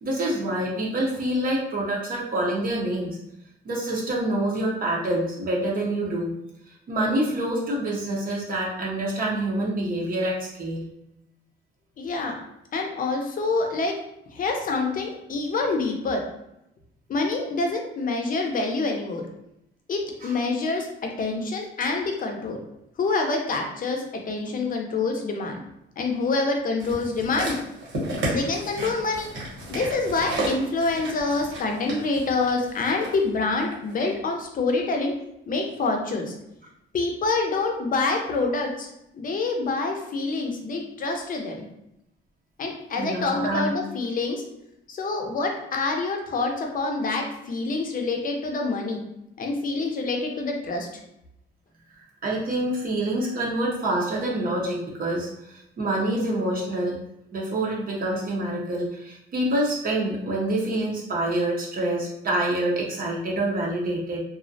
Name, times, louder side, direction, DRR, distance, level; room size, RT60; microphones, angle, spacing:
voice 1, 0.0-3.2 3.6-6.3 6.9-10.9 20.2-20.4 28.3-28.4 43.0-43.7 52.2-57.0 57.3-64.2, right 1 dB, 45° right, -4 dB, 0.6 m, -26 dB
voice 2, 12.0-12.3 12.7-14.0 14.3-16.2 17.1-19.2 19.9-22.6 23.0-25.6 26.0-27.6 28.3-29.3 29.7-35.1 35.5-36.3 36.9-38.9 39.1-41.7 42.6-44.4 44.9-49.0 49.4-50.9, left 3 dB, 45° left, 2 dB, 0.5 m, -26 dB
sound 1, 26.8-33.2 33.9-34.0, right 1 dB, 80° right, 1.1 m, -33 dB
2.3 x 2.0 x 2.6 m, 0.84 s
cardioid pair, 90°, 20 cm